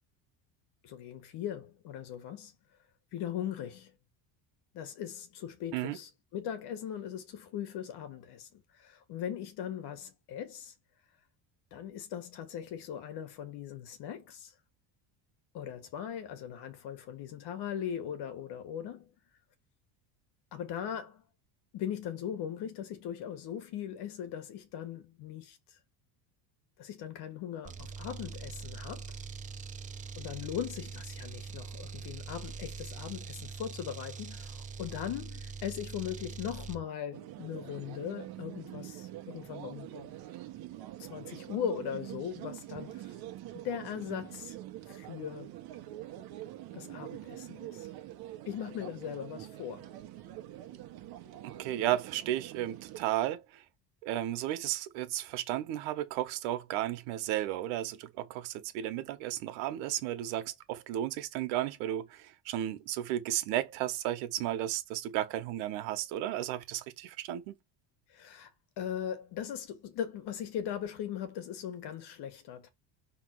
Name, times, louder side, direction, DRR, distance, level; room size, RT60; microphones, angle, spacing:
voice 1, 0.8-2.5 3.1-3.9 4.7-10.7 11.7-14.5 15.5-19.1 20.5-21.2 21.7-25.8 26.8-29.2 30.1-40.1 41.0-43.2 43.5-44.6 44.9-45.5 46.7-47.9 48.5-49.9 68.1-68.5 68.8-72.7, left 9 dB, 55° left, 1.6 m, -39 dB
sound 1, 27.6-36.8, right 5 dB, 20° right, 0.4 m, -43 dB
sound 2, 37.1-53.1, right 14 dB, 50° right, 1.2 m, -45 dB
voice 2, 51.4-53.6 54.0-67.6, right 13 dB, 90° right, 1.3 m, -34 dB
6.2 x 3.6 x 4.7 m
cardioid pair, 150°, 47 cm